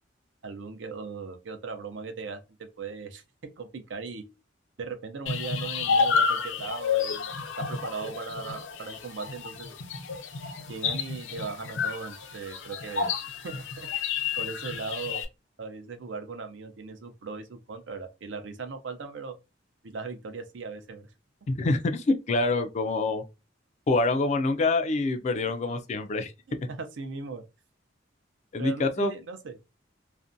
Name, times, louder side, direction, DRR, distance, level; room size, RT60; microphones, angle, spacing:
voice 1, 0.4-3.2 3.6-4.2 4.8-9.7 10.7-13.1 13.4-13.9 14.4-15.2 15.6-19.4 19.8-21.1 26.5-27.4 28.6-29.6, right 4 dB, 75° right, 0.5 m, -38 dB
sound 1, 5.3-15.3, left 5 dB, 90° left, 0.5 m, -30 dB
voice 2, 21.5-23.2 23.9-26.3 28.5-29.1, left 2 dB, 40° left, 0.3 m, -26 dB
2.5 x 2.1 x 2.5 m
head